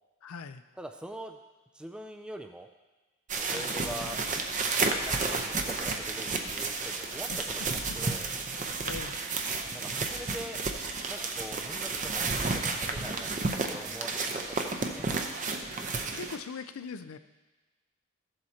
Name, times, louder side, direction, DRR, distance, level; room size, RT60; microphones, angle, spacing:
voice 1, 0.2-0.6 3.5-3.7 7.3-7.4 8.8-9.2 15.8-17.2, left 5 dB, 85° left, 11 dB, 0.5 m, -41 dB
voice 2, 0.8-1.4 1.7-2.7 3.3-4.2 4.8-7.3 7.6-8.3 9.7-10.6 11.1-13.3 13.7-15.1, right 1 dB, 5° right, 5 dB, 0.3 m, -43 dB
sound 1, 3.3-16.4, right 3 dB, 35° right, 0.7 m, -32 dB
14.5 x 7.7 x 2.8 m, 1.2 s
head